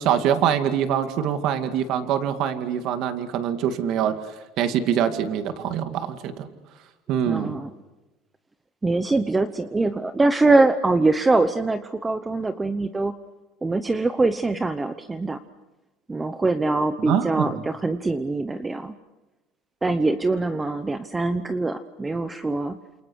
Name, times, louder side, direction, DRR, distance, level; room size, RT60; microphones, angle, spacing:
voice 1, 0.0-4.2 4.6-6.5 7.1-7.6 17.0-17.6, right 9 dB, 55° right, 8 dB, 2.2 m, -24 dB
voice 2, 7.3-7.7 8.8-13.1 13.6-15.4 16.1-18.9 19.8-22.8, right 3 dB, 10° right, 10 dB, 0.9 m, -23 dB
29.5 x 28.0 x 6.4 m, 1.1 s
cardioid pair, 150°, 0 cm